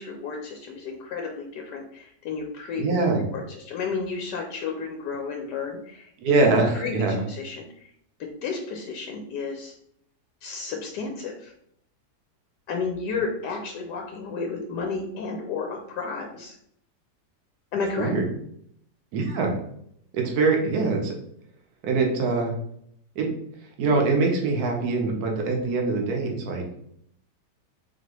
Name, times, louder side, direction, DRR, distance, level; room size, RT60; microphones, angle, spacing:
voice 1, 0.0-6.4 6.7-7.9 8.4-9.7 10.4-11.5 12.7-16.6 17.7-18.1, left 4 dB, 80° left, 2 dB, 1.2 m, -32 dB
voice 2, 2.8-3.2 6.2-7.2 18.0-18.2 19.1-19.5 20.1-21.1 21.8-22.5 23.1-23.3 23.8-26.8, right 3 dB, 65° right, 1 dB, 1.3 m, -23 dB
4.8 x 2.8 x 3.0 m, 0.71 s
omnidirectional pair, 1.8 m